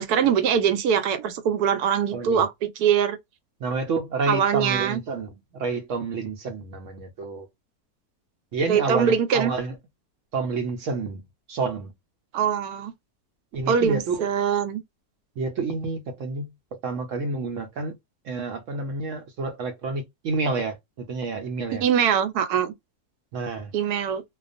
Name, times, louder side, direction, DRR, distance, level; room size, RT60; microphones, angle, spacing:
voice 1, 0.0-3.2 4.3-5.0 8.7-9.5 12.3-12.9 13.7-14.8 21.7-22.7 23.7-24.2, right 8 dB, 85° right, 1.1 m, -23 dB
voice 2, 2.1-2.5 3.6-7.5 8.5-9.8 10.3-11.2 11.5-11.9 13.5-14.3 15.4-16.5 16.8-18.0 18.2-21.8 23.3-23.7, right 4 dB, 65° right, 0.9 m, -29 dB
2.4 x 2.2 x 2.5 m
omnidirectional pair, 1.6 m